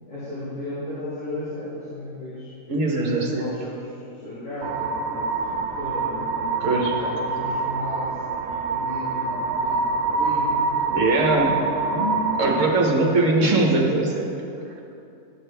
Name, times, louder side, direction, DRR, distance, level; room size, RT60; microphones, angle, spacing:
voice 1, 0.1-2.5 3.0-10.7, left 1 dB, 60° left, -11 dB, 2.4 m, -35 dB
voice 2, 2.7-3.5 6.6-6.9 10.9-11.6 11.9-14.3, right 2 dB, 60° right, 0 dB, 1.4 m, -21 dB
sound 1, 4.6-12.7, right 4 dB, 80° right, 1.0 m, -26 dB
11.5 x 7.2 x 3.3 m, 2.7 s
omnidirectional pair, 1.5 m